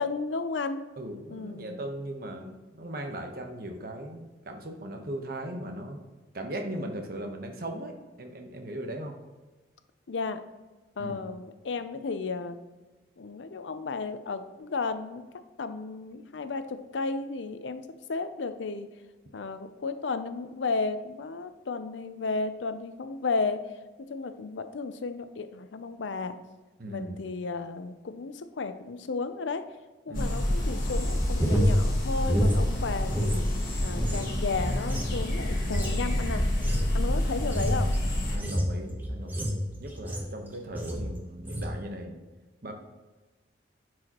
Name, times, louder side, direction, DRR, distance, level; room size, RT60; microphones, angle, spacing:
voice 1, 0.0-0.8 1.3-1.9 10.1-10.4 11.0-12.6 13.2-15.2 15.6-18.9 19.3-23.7 24.1-26.4 26.9-29.6 30.1-33.5 33.8-36.4 36.9-37.9, left 4 dB, 80° left, 10 dB, 0.5 m, -33 dB
voice 2, 1.0-6.0 6.3-9.2 11.0-11.1 26.8-27.1 30.1-30.4 38.3-42.2 42.6-42.7, right 1 dB, 55° right, 3 dB, 1.0 m, -38 dB
sound 1, 30.1-38.4, left 1 dB, 50° left, 1.7 m, -28 dB
sound 2, 31.1-33.4 33.7-40.4 40.7-41.1 41.4-41.7, equal, 10° right, 1.0 m, -29 dB
10.5 x 4.8 x 3.0 m, 1.2 s
head